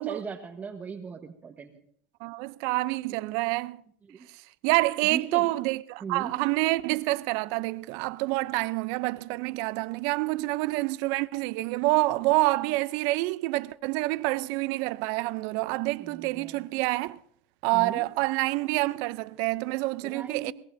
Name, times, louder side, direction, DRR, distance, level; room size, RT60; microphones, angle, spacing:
voice 1, 0.0-1.7 3.1-3.2 4.1-4.3 5.1-5.5 6.0-6.3 16.0-16.6 17.7-18.1 20.0-20.5, right 6 dB, 25° right, 1.2 m, -38 dB
voice 2, 2.2-3.8 4.6-17.2 17.6-20.5, right 21 dB, 65° right, 0.5 m, -27 dB
22.0 x 17.5 x 2.7 m
supercardioid pair, 100°, 6 cm